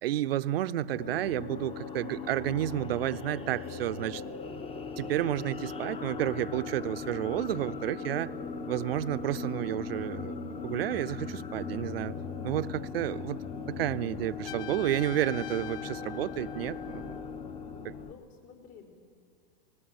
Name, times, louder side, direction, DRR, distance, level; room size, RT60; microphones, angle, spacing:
voice 1, 0.0-4.2 5.0-8.3 8.7-10.4 10.6-12.1 12.4-17.1 17.8-17.9, right 13 dB, 80° right, 0.7 m, -31 dB
sound 1, 0.8-18.1, left 5 dB, 20° left, 1.1 m, -39 dB
voice 2, 7.9-8.4 17.7-17.8 18.0-18.9, left 6 dB, 50° left, 4.7 m, -53 dB
Trumpet, 14.5-17.3, left 12 dB, 65° left, 0.9 m, -44 dB
19.0 x 19.0 x 9.3 m
hypercardioid pair, 125°, 29 cm